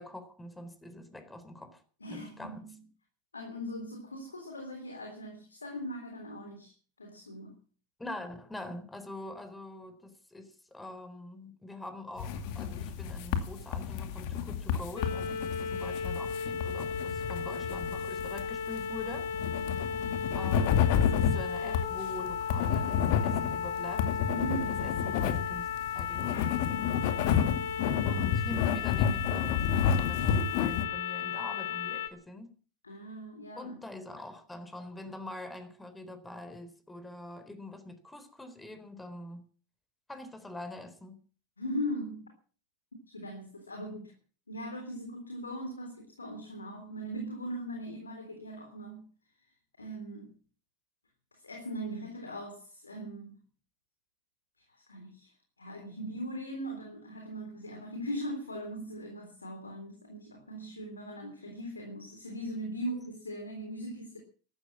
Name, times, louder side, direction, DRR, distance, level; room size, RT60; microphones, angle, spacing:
voice 1, 0.0-1.8 2.1-2.6 8.0-19.3 19.7-19.9 20.3-24.1 24.8-25.7 26.0-26.5 28.0-32.5 33.6-39.4 40.1-41.2, left 1 dB, 10° left, 4.1 m, -44 dB
voice 2, 2.0-2.8 3.3-6.7 7.0-7.6 24.3-24.8 32.8-33.8 41.6-42.3 43.1-44.1 44.5-49.1 49.8-50.3 51.3-53.4 54.7-55.3 55.6-64.2, equal, 90° left, 3.7 m, -39 dB
sound 1, 12.2-30.8, left 8 dB, 60° left, 2.4 m, -31 dB
sound 2, 15.0-32.1, left 7 dB, 75° left, 2.7 m, -35 dB
14.0 x 13.0 x 7.4 m
hypercardioid pair, 85°, 0 cm